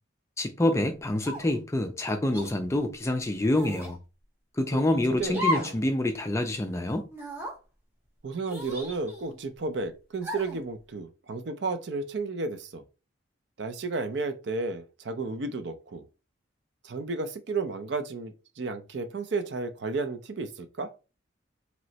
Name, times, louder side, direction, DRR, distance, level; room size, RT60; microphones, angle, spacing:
voice 1, 0.4-4.0 4.6-7.1, left 1 dB, 15° left, 0.3 m, -27 dB
sound 1, 1.2-1.6 2.3-2.5 3.5-4.0 5.3-5.8 6.2-6.3 7.1-7.6 8.5-9.4 10.2-10.6, equal, 10° right, 0.7 m, -34 dB
voice 2, 5.1-5.7 8.2-12.8 13.6-16.0 16.8-20.9, right 3 dB, 60° right, 0.5 m, -33 dB
3.0 x 3.0 x 2.8 m
head